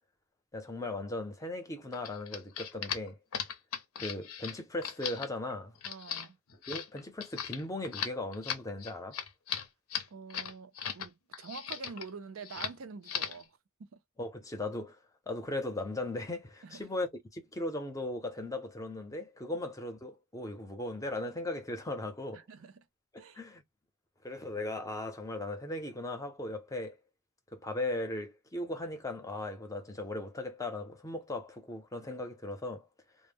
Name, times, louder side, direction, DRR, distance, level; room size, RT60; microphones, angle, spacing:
voice 1, 0.5-3.2 4.0-5.8 6.7-9.2 14.2-15.0 15.3-22.4 23.1-23.6 24.2-27.0 27.5-32.9, left 2 dB, 15° left, 0.6 m, -38 dB
sound 1, 1.9-11.1 11.3-12.1 12.4-12.8 13.0-13.4, left 8 dB, 90° left, 0.7 m, -38 dB
voice 2, 5.9-6.4 10.1-14.0 16.6-16.9 22.3-22.9 23.2-23.4, right 5 dB, 65° right, 0.4 m, -46 dB
2.1 x 2.0 x 3.4 m
head